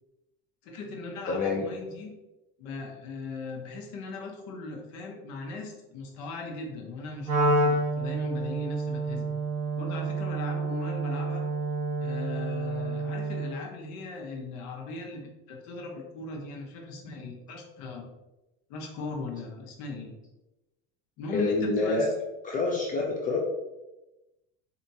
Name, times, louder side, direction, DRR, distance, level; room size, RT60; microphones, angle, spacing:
voice 1, 0.6-2.1 2.6-9.3 9.8-11.4 12.0-18.1 18.7-20.1 21.2-22.1, left 3 dB, 60° left, 1 dB, 1.0 m, -38 dB
voice 2, 1.3-1.7 21.3-22.1 22.4-23.4, left 3 dB, 25° left, -1 dB, 0.5 m, -27 dB
Wind instrument woodwind instrument, 7.2-13.6, right 2 dB, 55° right, 1.5 m, -29 dB
4.5 x 2.7 x 2.7 m, 1.0 s
cardioid pair, 145°, 31 cm